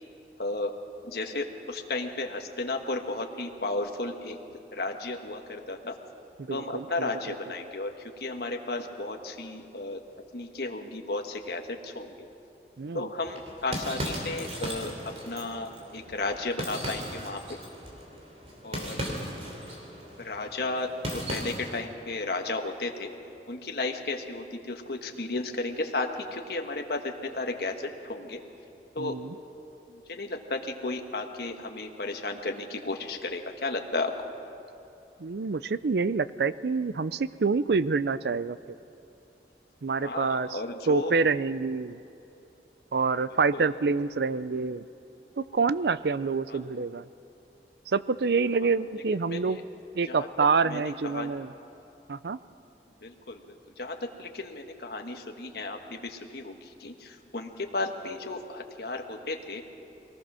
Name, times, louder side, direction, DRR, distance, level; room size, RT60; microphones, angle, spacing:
voice 1, 0.4-0.7 1.0-4.4 4.7-6.0 6.5-10.0 10.3-12.2 12.9-14.9 15.2-17.6 18.6-19.2 20.2-23.1 23.5-28.4 28.9-29.2 29.9-34.1 40.0-41.1 43.5-43.7 46.5-46.6 49.3-49.6 50.0-50.3 50.6-51.4 53.0-59.6, left 2 dB, 65° left, 4 dB, 1.4 m, -34 dB
voice 2, 6.5-7.4 12.8-13.1 29.0-29.3 35.2-38.6 39.8-40.6 40.9-42.0 42.9-44.8 45.4-47.1 47.9-49.6 49.9-51.5 52.1-52.4, right 4 dB, 70° right, 16 dB, 0.5 m, -27 dB
sound 1, 13.2-21.9, equal, 35° right, 3.0 m, -37 dB
22.5 x 18.5 x 6.2 m, 2.8 s
head